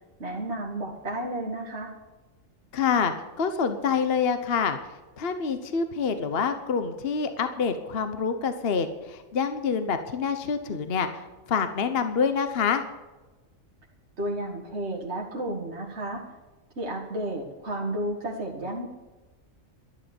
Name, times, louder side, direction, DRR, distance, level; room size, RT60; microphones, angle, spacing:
voice 1, 0.2-1.9 14.2-16.2 16.8-18.9, right 1 dB, 55° right, -3 dB, 2.2 m, -32 dB
voice 2, 2.7-4.8 5.2-12.8, left 6 dB, 50° left, 9 dB, 1.1 m, -26 dB
12.5 x 11.5 x 7.1 m, 1.2 s
omnidirectional pair, 1.4 m